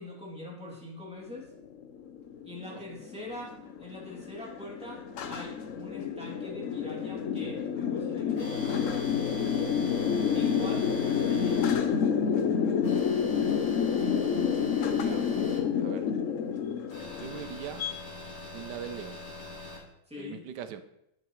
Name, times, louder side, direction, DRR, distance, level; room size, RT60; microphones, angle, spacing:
voice 1, 0.0-1.5 2.4-9.8 10.3-11.7 20.1-20.4, left 2 dB, 5° right, -3 dB, 2.6 m, -43 dB
sound 1, 1.6-17.9, left 7 dB, 60° left, 0.9 m, -29 dB
sound 2, 8.4-11.8 12.8-15.6 16.9-19.8, left 3 dB, 80° left, 3.8 m, -40 dB
voice 2, 15.0-16.1 17.2-17.9 18.5-19.2 20.2-20.8, right 9 dB, 90° right, 11 dB, 1.3 m, -41 dB
11.5 x 8.2 x 3.1 m, 0.81 s
omnidirectional pair, 1.8 m